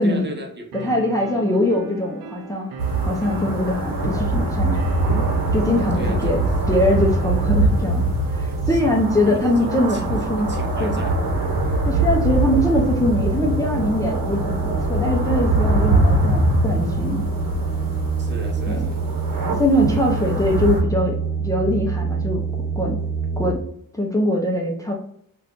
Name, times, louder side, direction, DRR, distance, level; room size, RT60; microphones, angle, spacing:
voice 1, 0.0-0.9 5.8-6.3 8.7-8.8 9.2-11.2 18.2-19.0, right 2 dB, 30° right, 3 dB, 0.7 m, -34 dB
sound 1, 0.7-8.7, right 4 dB, 85° right, 0.5 m, -39 dB
voice 2, 0.8-2.7 3.1-4.8 5.5-6.4 6.7-8.1 8.3-10.5 10.8-11.0 11.8-17.2 19.5-22.4 22.7-23.0 23.4-23.6 23.9-24.9, left 1 dB, 10° left, -2 dB, 0.5 m, -22 dB
sound 2, 2.8-20.8, right 2 dB, 70° right, 0.8 m, -23 dB
sound 3, 13.0-23.6, right 5 dB, 30° left, 1.4 m, -26 dB
2.4 x 2.3 x 3.5 m, 0.68 s
cardioid pair, 75°, 35 cm